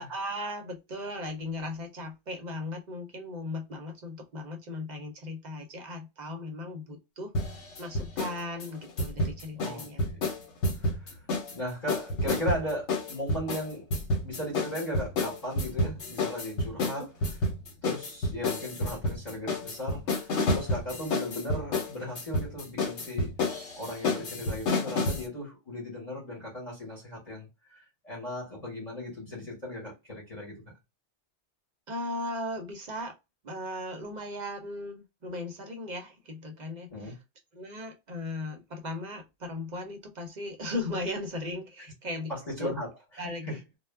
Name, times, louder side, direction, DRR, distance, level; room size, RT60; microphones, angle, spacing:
voice 1, 0.0-7.3 7.8-10.0 16.8-17.1 31.9-33.1 33.4-37.2 37.5-42.7 43.2-43.6, left 1 dB, 50° right, 0.6 m, -37 dB
sound 1, 7.4-8.4 8.6-11.6 11.9-25.3, left 2 dB, 75° left, 1.1 m, -30 dB
voice 2, 9.5-10.2 10.9-11.0 11.5-13.9 14.2-17.1 17.8-23.3 23.8-30.6 36.9-37.1 42.3-42.9 43.5-43.6, equal, 35° left, 0.9 m, -37 dB
2.2 x 2.0 x 3.2 m
omnidirectional pair, 1.2 m